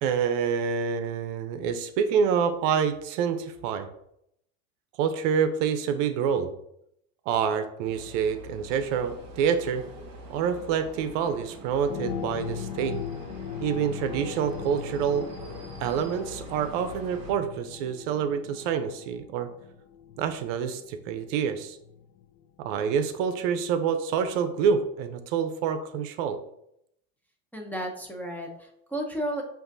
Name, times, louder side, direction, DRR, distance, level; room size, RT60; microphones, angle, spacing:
voice 1, 0.0-3.9 5.0-6.5 7.3-9.8 10.3-13.0 13.6-15.3 15.8-19.5 20.2-21.8 22.6-26.4, right 7 dB, 65° right, 9 dB, 0.6 m, -27 dB
sound 1, 7.8-17.3, right 1 dB, 40° right, 1.1 m, -44 dB
sound 2, 11.9-22.4 23.0-23.1, left 9 dB, 45° left, 0.4 m, -39 dB
voice 2, 27.5-29.4, right 1 dB, 5° left, 0 dB, 0.6 m, -33 dB
7.7 x 2.6 x 2.6 m, 0.77 s
supercardioid pair, 105°, 41 cm